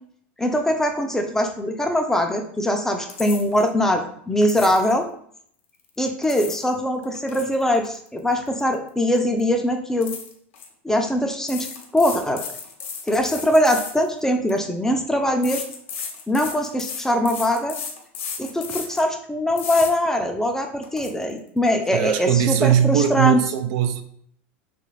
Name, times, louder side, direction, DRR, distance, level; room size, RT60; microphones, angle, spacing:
voice 1, 0.4-5.0 6.0-10.1 10.8-11.7 11.9-12.4 13.1-15.6 16.3-17.8 18.4-23.4, left 1 dB, 5° left, 0.5 m, -22 dB
sound 1, 3.1-3.7 4.4-5.0 6.0-6.7 7.0-8.9 9.2-9.4 10.0-10.7 11.4-14.6 15.4-19.1 19.6-19.9 20.4-20.5 20.8-21.1, left 6 dB, 70° left, 0.8 m, -34 dB
voice 2, 21.9-24.0, right 9 dB, 55° right, 0.3 m, -20 dB
3.0 x 2.5 x 3.1 m
hypercardioid pair, 95°, 7 cm